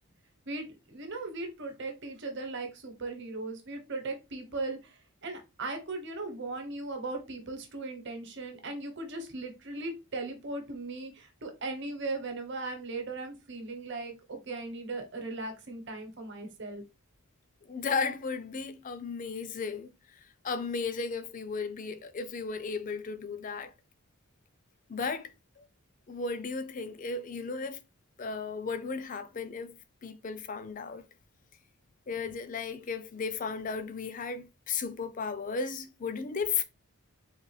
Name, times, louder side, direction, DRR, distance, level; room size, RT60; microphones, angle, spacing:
voice 1, 0.5-16.8, right 3 dB, 50° right, 1.0 m, -38 dB
voice 2, 17.7-20.2 20.4-23.7 24.9-25.6 26.1-27.8 28.2-31.0 32.1-36.6, left 5 dB, 35° left, 0.4 m, -35 dB
3.9 x 2.9 x 3.2 m
head